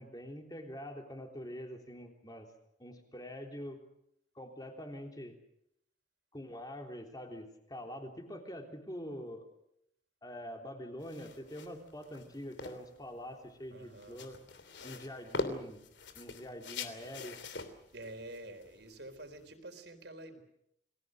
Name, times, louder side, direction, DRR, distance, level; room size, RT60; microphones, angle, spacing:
voice 1, 0.0-2.5 2.8-3.8 4.4-5.3 6.3-9.5 10.2-14.4 14.8-15.8 16.2-17.4, equal, 20° left, 3 dB, 3.4 m, -45 dB
sound 1, 11.0-19.5, left 3 dB, 80° left, 3.0 m, -44 dB
voice 2, 13.7-14.2 17.9-20.4, right 1 dB, 70° right, 7 dB, 4.1 m, -48 dB
29.5 x 20.0 x 6.5 m, 0.76 s
head